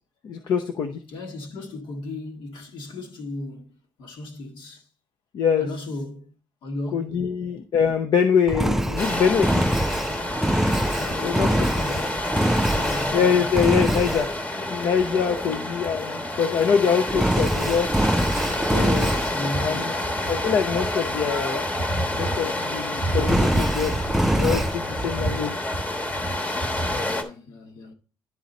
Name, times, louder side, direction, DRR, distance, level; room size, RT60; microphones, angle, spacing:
voice 1, 0.2-1.0 5.3-5.7 6.9-9.6 11.2-11.5 11.9-12.0 13.1-17.9 18.7-19.1 19.6-20.0 20.3-21.7 22.1-24.0 24.4-25.6, left 7 dB, 60° left, 0.7 m, -24 dB
voice 2, 1.1-4.9 5.6-6.3 6.6-7.2 11.0-12.3 12.7-13.2 15.5-15.7 19.3-20.0 27.0-27.9, left 2 dB, 80° left, 1.7 m, -36 dB
Engine, 8.5-13.2 13.5-14.3 17.1-19.4 23.2-24.7, right 1 dB, 5° right, 0.4 m, -24 dB
sound 1, 9.0-27.2, left 1 dB, 20° left, 1.2 m, -28 dB
11.0 x 4.0 x 4.1 m
cardioid pair, 140°, 8 cm